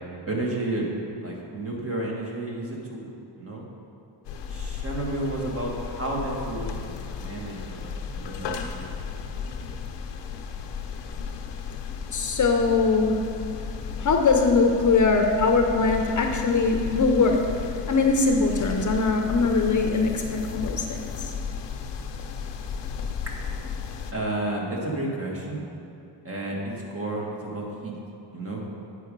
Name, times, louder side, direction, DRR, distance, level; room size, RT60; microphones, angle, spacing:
voice 1, 0.3-0.9 1.2-3.1 3.4-3.6 4.5-8.9 23.3-23.4 24.1-25.6 26.2-27.9 28.3-28.6, right 2 dB, 30° right, -2 dB, 1.7 m, -31 dB
sound 1, 4.2-24.1, left 6 dB, 85° left, 0.7 m, -34 dB
voice 2, 12.1-13.2 14.0-17.4 17.9-21.3, left 4 dB, 45° left, 3 dB, 0.7 m, -22 dB
9.2 x 4.9 x 5.3 m, 2.6 s
cardioid pair, 95°, 42 cm